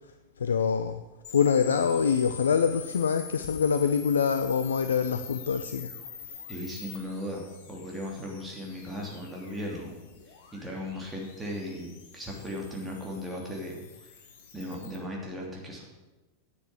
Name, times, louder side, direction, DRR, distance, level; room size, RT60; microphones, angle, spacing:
voice 1, 0.4-1.0 1.3-5.9, left 6 dB, 70° left, 10 dB, 0.5 m, -25 dB
sound 1, 1.2-15.0, left 6 dB, 50° left, 1.7 m, -46 dB
voice 2, 6.5-9.9 10.5-11.9 12.1-13.8 14.5-15.8, left 1 dB, 10° right, -2 dB, 3.0 m, -37 dB
9.6 x 7.0 x 8.3 m, 1.1 s
figure-of-eight pair, 90°, 0 cm